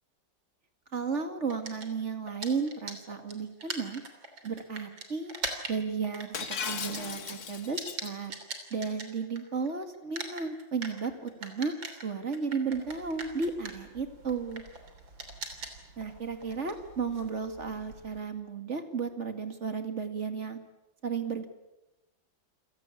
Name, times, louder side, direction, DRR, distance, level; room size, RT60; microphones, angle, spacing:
voice 1, 0.9-4.0 4.4-5.3 5.7-8.3 8.7-11.7 12.0-14.6 16.0-20.6 21.0-21.5, right 5 dB, 35° right, 7 dB, 2.3 m, -34 dB
sound 1, 1.5-9.7 9.9-18.2, right 3 dB, 70° right, 3.9 m, -42 dB
Shatter, 6.3-8.1, left 6 dB, 55° left, 1.8 m, -36 dB
28.5 x 17.5 x 8.6 m, 0.99 s
omnidirectional pair, 2.1 m